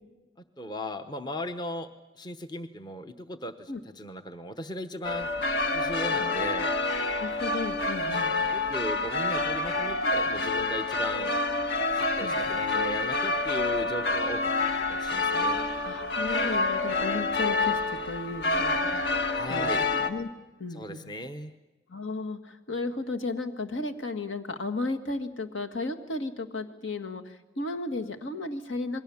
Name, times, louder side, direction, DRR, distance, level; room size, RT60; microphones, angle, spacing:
voice 1, 0.6-1.9 2.2-5.3 5.7-6.7 8.5-11.3 11.9-14.5 14.9-15.6 19.3-19.9 20.7-21.5, left 1 dB, 20° left, 9 dB, 0.9 m, -37 dB
sound 1, 5.0-20.1, left 3 dB, 55° left, 1.5 m, -28 dB
voice 2, 7.2-8.3 12.2-12.5 15.8-20.3 20.6-21.1 21.9-29.0, left 3 dB, 75° left, 5 dB, 1.9 m, -34 dB
28.0 x 22.0 x 7.2 m, 1.1 s
head